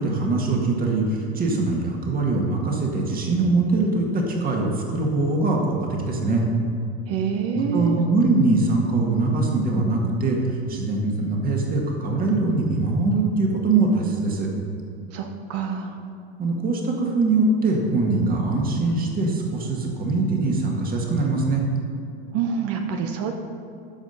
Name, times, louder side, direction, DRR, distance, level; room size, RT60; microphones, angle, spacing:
voice 1, 0.0-6.4 7.5-10.4 10.7-14.5 16.4-21.6, right 3 dB, 30° right, 0 dB, 1.9 m, -22 dB
voice 2, 7.1-8.0 15.1-16.0 22.3-23.3, right 7 dB, 50° right, 4 dB, 1.0 m, -26 dB
13.0 x 5.1 x 5.6 m, 2.6 s
supercardioid pair, 125°, 31 cm